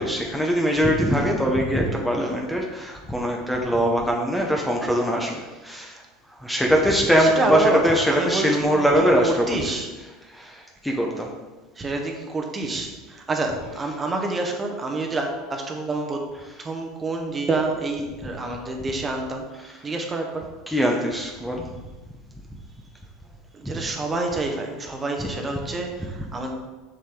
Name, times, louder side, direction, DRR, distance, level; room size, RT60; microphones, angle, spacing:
voice 1, 0.0-6.0 6.4-9.6 10.0-11.3 13.8-13.9 16.3-16.6 18.2-18.3 19.6-19.8 20.7-21.7 23.6-23.7 25.2-25.3, equal, 5° left, 0 dB, 1.1 m, -22 dB
voice 2, 7.2-8.5 8.7-8.9 9.2-9.9 11.8-16.2 16.6-19.4 19.8-20.5 23.5-26.5, right 2 dB, 20° right, 2 dB, 1.3 m, -27 dB
7.3 x 6.5 x 3.9 m, 1.2 s
supercardioid pair, 115°, 0 cm